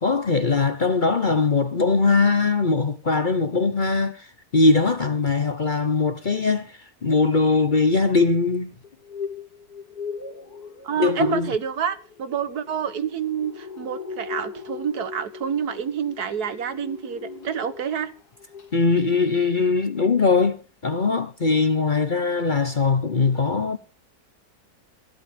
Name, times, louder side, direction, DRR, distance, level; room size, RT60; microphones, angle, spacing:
voice 1, 0.0-8.7 11.0-11.5 18.7-23.8, left 4 dB, 40° left, 0.9 m, -21 dB
sound 1, 8.8-18.1 18.4-18.7 19.0-19.1, left 5 dB, 75° left, 3.0 m, -39 dB
voice 2, 10.8-18.1, right 7 dB, 75° right, 1.8 m, -28 dB
16.0 x 11.5 x 5.0 m
omnidirectional pair, 1.7 m